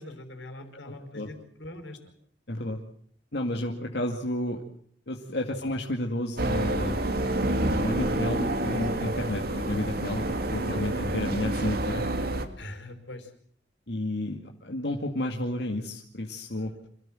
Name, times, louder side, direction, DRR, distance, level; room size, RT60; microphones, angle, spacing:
voice 1, 0.0-2.0 12.6-13.3 16.6-16.9, left 1 dB, 90° left, 7 dB, 5.2 m, -43 dB
voice 2, 0.8-1.3 2.5-2.8 3.3-4.6 5.1-7.0 7.7-12.0 13.9-16.7, left 1 dB, 65° left, 0 dB, 2.4 m, -31 dB
sound 1, 6.4-12.4, right 1 dB, 55° right, 2.4 m, -28 dB
27.0 x 17.0 x 7.8 m, 0.62 s
head